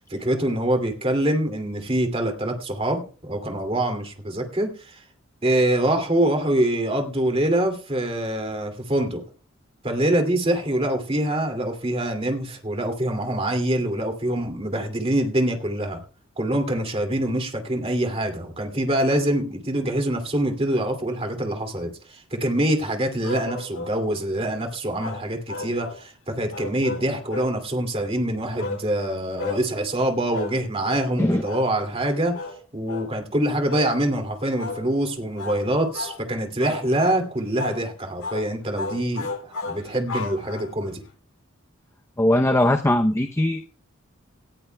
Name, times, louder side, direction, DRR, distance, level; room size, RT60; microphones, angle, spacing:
voice 1, 0.1-5.0 5.4-9.2 9.8-16.0 16.4-32.3 32.7-41.0, right 1 dB, 30° right, 4 dB, 2.4 m, -25 dB
sound 1, 23.2-24.0 25.0-26.0 26.5-27.5 28.6-28.8 29.4-29.6 30.3-30.6 30.8-31.1 31.4-31.7 32.3-32.6 32.9-33.1 33.7-33.9 34.6-34.8 35.3-35.6 35.9-36.2 36.6-37.2 37.6-37.8 38.2-38.5 38.7-40.9, left 3 dB, 90° left, 4.2 m, -33 dB
voice 2, 42.2-43.7, left 1 dB, 15° left, 5 dB, 0.6 m, -20 dB
18.5 x 14.5 x 2.2 m, 0.37 s
head